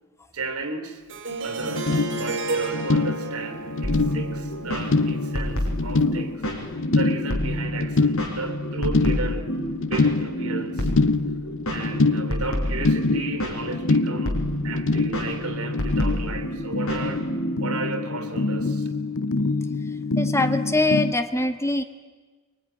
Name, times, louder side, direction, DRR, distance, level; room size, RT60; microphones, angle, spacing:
voice 1, 0.3-1.0 1.4-6.4 7.0-9.5 9.9-10.9 11.7-17.3 17.6-18.9, right 3 dB, 90° right, 3.6 m, -34 dB
Harp, 1.1-6.0, right 3 dB, 60° right, 2.9 m, -33 dB
sound 1, 1.3-1.4 1.6-21.1, left 3 dB, 65° left, 0.8 m, -26 dB
sound 2, 3.8-17.7, equal, 85° left, 5.8 m, -29 dB
voice 2, 20.2-21.8, left 2 dB, 15° left, 1.3 m, -23 dB
24.0 x 23.5 x 9.9 m
head